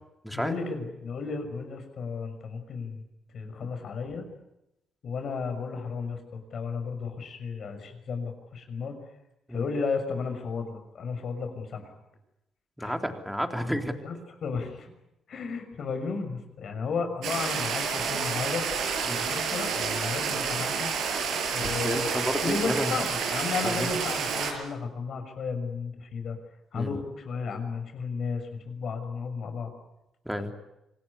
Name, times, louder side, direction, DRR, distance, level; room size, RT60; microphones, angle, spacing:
voice 1, 0.3-3.0 3.3-4.2 5.0-8.9 9.5-11.9 12.8-13.0 14.0-14.2 14.4-14.9 15.3-18.6 19.1-20.9 21.5-26.4 26.7-29.7 30.4-30.5, left 4 dB, 60° left, 6 dB, 6.3 m, -33 dB
voice 2, 12.8-14.0 19.1-19.2 21.6-22.9 23.6-24.2 26.7-26.9 30.3-30.5, equal, ahead, 4 dB, 3.5 m, -31 dB
sound 1, 17.2-24.5, right 6 dB, 80° right, 6.0 m, -29 dB
26.5 x 18.5 x 9.9 m, 0.90 s
cardioid pair, 90°, 0 cm